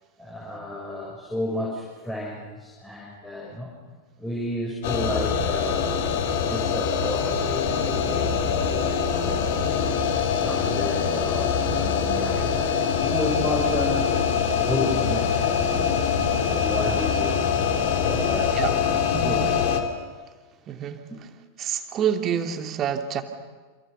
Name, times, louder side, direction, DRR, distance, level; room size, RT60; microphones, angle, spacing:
voice 1, 0.2-3.7 4.2-6.1 6.4-9.8 10.4-14.1 14.6-15.9 16.4-18.9 19.2-20.1 21.1-21.2, left 1 dB, 5° left, -3 dB, 6.8 m, -32 dB
sound 1, 4.8-19.8, left 7 dB, 50° left, 3.5 m, -24 dB
voice 2, 19.1-19.4 20.7-21.0 21.6-23.2, right 8 dB, 30° right, 6 dB, 2.7 m, -27 dB
29.0 x 28.0 x 6.8 m, 1.4 s
figure-of-eight pair, 90°, 0 cm